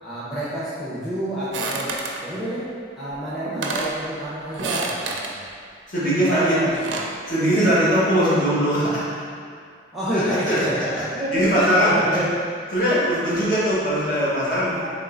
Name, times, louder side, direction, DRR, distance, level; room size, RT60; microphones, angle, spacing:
voice 1, 0.0-1.9 2.2-2.7 3.0-5.4 6.3-6.8 9.9-12.3 12.9-13.0 14.8-14.9, equal, ahead, -12 dB, 0.8 m, -28 dB
sound 1, 1.5-2.2 3.1-3.2 3.5-4.0 4.5-5.3 6.5-7.2, right 3 dB, 75° right, 0.4 m, -29 dB
voice 2, 5.9-6.6 7.3-9.0 10.1-11.0 11.3-12.0 12.7-14.9, equal, 45° left, -10 dB, 1.4 m, -21 dB
3.7 x 3.4 x 3.8 m, 2.2 s
head